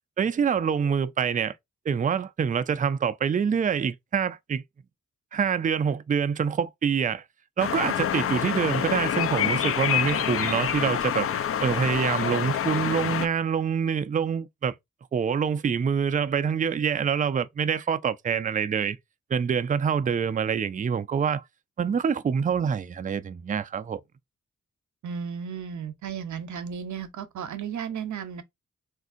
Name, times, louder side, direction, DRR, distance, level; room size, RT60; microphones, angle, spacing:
voice 1, 0.2-1.5 1.9-4.6 5.3-7.2 7.6-11.3 11.6-14.7 15.1-19.0 19.3-21.4 21.8-24.0, right 7 dB, 25° right, 0.3 m, -26 dB
sound 1, 7.6-13.3, left 9 dB, 45° left, 0.4 m, -27 dB
voice 2, 25.0-28.4, right 7 dB, 65° right, 0.7 m, -34 dB
3.4 x 2.6 x 2.5 m
cardioid pair, 50°, 31 cm